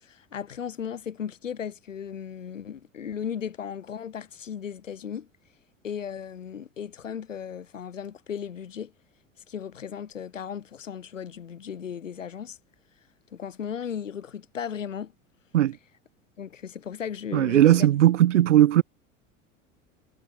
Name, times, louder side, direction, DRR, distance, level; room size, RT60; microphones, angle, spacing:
voice 1, 0.0-5.3 5.8-8.9 9.5-12.6 13.3-15.1 16.4-17.9, left 8 dB, 75° left, 3.7 m, -36 dB
voice 2, 17.3-18.8, right 12 dB, 70° right, 3.4 m, -18 dB
figure-of-eight pair, 75°, 38 cm